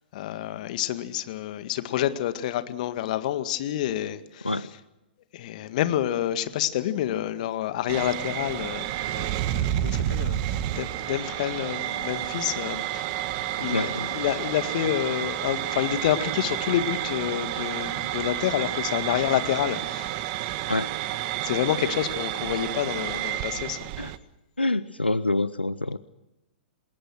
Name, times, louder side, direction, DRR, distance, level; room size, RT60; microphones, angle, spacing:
voice 1, 0.1-4.6 5.3-13.1 13.6-20.1 21.4-23.9, left 12 dB, 50° left, 11 dB, 1.9 m, -28 dB
sound 1, 7.9-24.2, right 13 dB, 40° right, 1.5 m, -30 dB
voice 2, 13.7-14.1 20.7-20.9 24.0-24.1 24.6-26.0, left 2 dB, 90° left, 16 dB, 0.8 m, -26 dB
28.0 x 21.0 x 6.3 m, 0.95 s
figure-of-eight pair, 110°, 6 cm